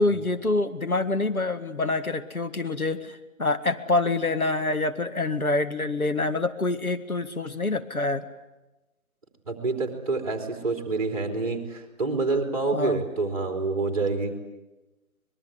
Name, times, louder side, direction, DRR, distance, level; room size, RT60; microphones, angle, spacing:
voice 1, 0.0-8.2 12.7-13.0, left 2 dB, 85° left, 8 dB, 2.1 m, -26 dB
voice 2, 9.5-14.4, right 3 dB, 25° right, 4 dB, 3.6 m, -27 dB
24.5 x 21.5 x 9.7 m, 1.1 s
figure-of-eight pair, 160°, 42 cm